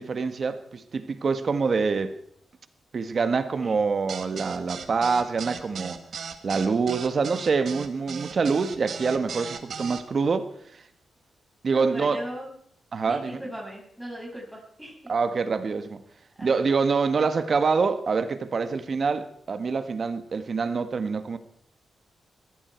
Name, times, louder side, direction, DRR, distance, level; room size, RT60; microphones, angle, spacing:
voice 1, 0.0-2.1 2.9-6.0 6.4-10.8 11.6-12.2 12.9-13.4 15.1-16.0 16.4-21.4, right 4 dB, 50° right, 1.6 m, -25 dB
voice 2, 3.4-3.8 11.6-12.5 13.0-15.1 16.3-16.6, equal, ahead, 6.4 m, -39 dB
sound 1, 4.1-10.0, right 6 dB, 65° right, 1.6 m, -37 dB
21.0 x 15.0 x 4.6 m
cardioid pair, 80°, 0 cm